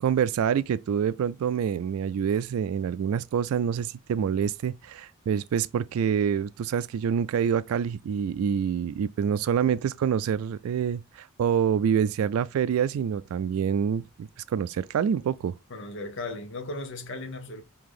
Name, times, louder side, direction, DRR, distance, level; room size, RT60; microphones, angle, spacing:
voice 1, 0.0-15.5, right 7 dB, 85° right, 0.3 m, -26 dB
voice 2, 15.7-17.6, left 2 dB, 60° left, 0.8 m, -36 dB
4.9 x 2.8 x 3.7 m
head